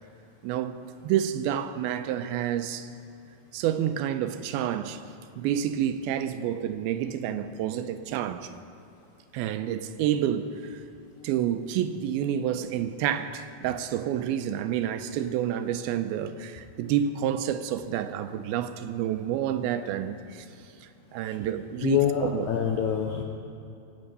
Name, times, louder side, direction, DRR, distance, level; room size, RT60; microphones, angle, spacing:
voice 1, 0.4-2.9 3.5-5.0 5.4-8.5 9.3-10.8 11.2-20.5 20.8-22.5, right 10 dB, 85° right, 2.5 m, -29 dB
voice 2, 21.8-23.2, left 9 dB, 80° left, 1.7 m, -26 dB
22.0 x 8.2 x 5.4 m
omnidirectional pair, 4.3 m